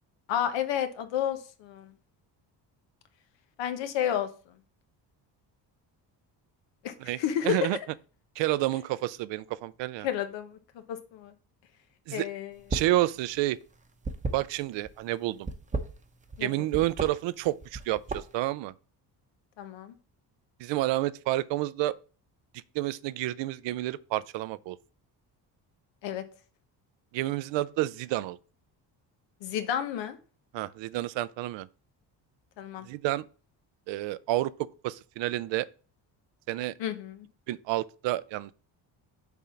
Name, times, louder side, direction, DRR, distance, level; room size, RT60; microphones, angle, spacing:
voice 1, 0.3-1.9 3.6-4.3 6.8-7.7 10.0-10.6 10.9-11.3 12.1-12.6 16.4-16.7 19.6-19.9 26.0-26.2 29.4-30.2 32.6-32.9 36.8-37.3, left 10 dB, 85° left, 1.1 m, -31 dB
voice 2, 7.4-7.8 8.4-10.1 12.1-12.3 12.7-13.6 14.3-15.5 16.4-18.7 20.6-22.0 22.7-24.8 27.1-28.4 30.5-31.7 32.8-33.2 33.9-35.7 36.5-36.7 37.5-38.5, right 16 dB, 85° right, 0.6 m, -29 dB
sound 1, 12.6-13.0 13.3-14.9 15.4-16.4 16.7-17.1 17.6-18.5, right 3 dB, 15° right, 0.7 m, -33 dB
7.1 x 3.8 x 5.7 m
cardioid pair, 130°, 43 cm